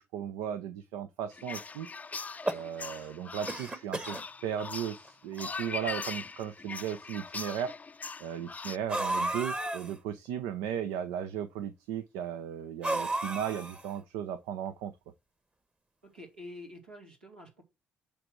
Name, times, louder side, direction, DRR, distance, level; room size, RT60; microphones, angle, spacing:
voice 1, 0.0-1.9 2.5-7.7 8.2-14.9, right 9 dB, 70° right, 0.5 m, -36 dB
sound 1, 1.3-8.8, left 4 dB, 30° left, 0.4 m, -41 dB
sound 2, 2.2-3.1 3.5-4.2 5.1-5.2 5.4-5.5 6.4-6.5 8.9-9.9 12.8-14.0, right 1 dB, 20° right, 1.2 m, -33 dB
voice 2, 16.0-17.6, left 1 dB, 90° right, 2.5 m, -47 dB
8.7 x 3.4 x 6.5 m
hypercardioid pair, 45°, 5 cm